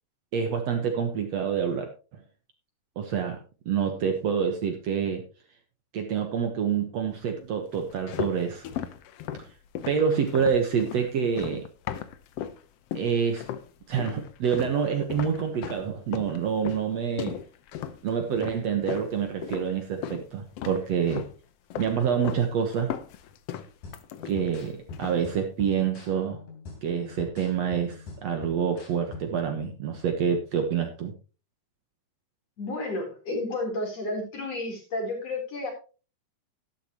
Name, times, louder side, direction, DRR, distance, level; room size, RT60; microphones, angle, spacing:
voice 1, 0.3-1.9 3.0-3.4 3.7-5.2 5.9-8.7 9.9-11.6 12.9-13.4 13.9-17.4 18.0-21.3 21.8-22.9 24.3-26.4 26.8-31.1, right 7 dB, 60° right, 5 dB, 2.2 m, -27 dB
sound 1, 7.7-12.6 12.9-13.7 14.0-20.3 20.6-21.4 21.7-22.5 22.7-24.6 24.9-25.3, left 9 dB, 70° left, 1.5 m, -36 dB
sound 2, 23.8-29.5, left 4 dB, 90° left, 4.9 m, -44 dB
voice 2, 32.6-35.7, left 2 dB, 50° left, 1 dB, 4.9 m, -31 dB
13.5 x 12.0 x 3.0 m, 0.34 s
omnidirectional pair, 3.9 m